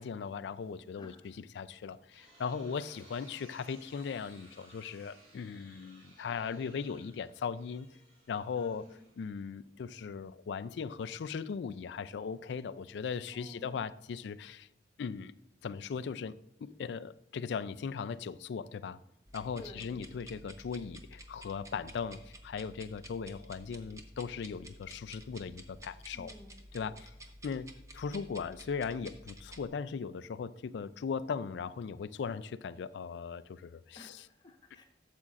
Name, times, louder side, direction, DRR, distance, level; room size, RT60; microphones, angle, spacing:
voice 1, 0.0-7.9 8.3-8.9 9.2-14.7 15.0-15.4 15.6-19.0 19.3-26.3 26.7-27.1 27.4-34.3, left 6 dB, 75° left, 0.3 m, -38 dB
sound 1, 2.1-9.6, right 1 dB, 40° right, 3.3 m, -60 dB
voice 2, 8.6-9.1 13.3-13.9 19.6-20.0 26.1-27.0 33.9-34.8, equal, 25° left, 1.1 m, -53 dB
sound 2, 19.3-29.7, right 1 dB, 15° right, 0.7 m, -52 dB
12.0 x 7.4 x 2.5 m
head